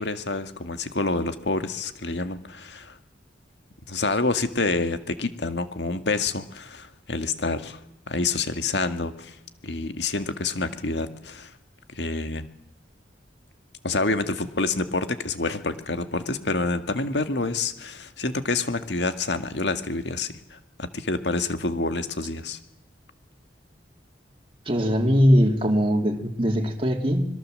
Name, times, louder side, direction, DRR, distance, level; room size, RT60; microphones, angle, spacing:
voice 1, 0.0-3.0 3.9-7.8 8.1-9.4 9.6-11.5 11.9-12.5 13.8-22.6, left 3 dB, 70° left, 9 dB, 2.0 m, -27 dB
voice 2, 24.6-27.3, equal, 30° right, 2 dB, 2.6 m, -21 dB
25.5 x 22.5 x 7.7 m, 0.81 s
head